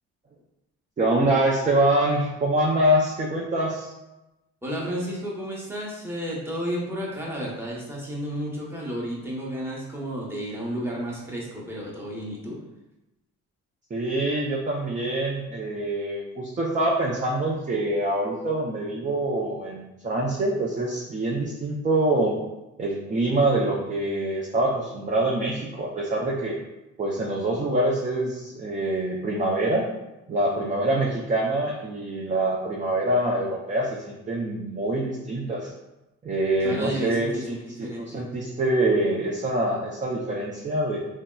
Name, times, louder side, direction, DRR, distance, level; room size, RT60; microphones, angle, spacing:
voice 1, 1.0-3.9 13.9-22.4 22.8-26.6 27.0-29.9 30.3-35.7 36.2-41.0, right 1 dB, 25° right, -3 dB, 0.4 m, -25 dB
voice 2, 4.6-12.6 36.6-38.2, equal, 10° right, -4 dB, 0.8 m, -32 dB
3.1 x 2.7 x 2.2 m, 0.96 s
cardioid pair, 90°, 30 cm